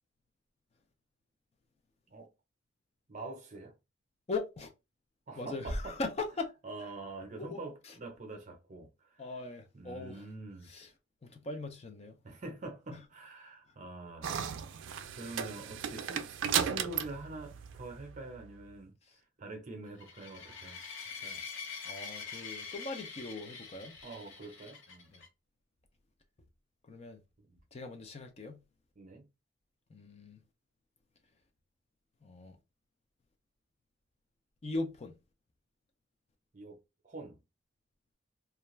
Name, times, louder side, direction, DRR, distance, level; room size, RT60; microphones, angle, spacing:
voice 1, 3.1-3.7 5.3-6.0 6.6-9.2 9.7-10.7 12.2-14.3 15.2-18.9 19.4-20.8 21.2-21.4 24.0-25.1 29.0-29.3 36.5-36.8 37.0-37.4, right 2 dB, 40° right, 0.7 m, -45 dB
voice 2, 4.3-4.7 5.4-6.5 6.8-6.9 7.4-8.0 9.2-10.3 10.6-10.9 11.2-12.2 12.9-13.0 13.7-13.8 19.0-19.2 21.2-21.4 21.8-24.0 25.1-25.2 26.8-27.2 27.7-28.6 29.9-30.4 32.2-32.6 34.6-35.1, left 3 dB, 35° left, 0.4 m, -40 dB
sound 1, 14.2-18.5, right 8 dB, 75° right, 0.3 m, -35 dB
sound 2, 20.0-25.3, left 5 dB, 85° left, 0.8 m, -45 dB
2.4 x 2.2 x 3.0 m
head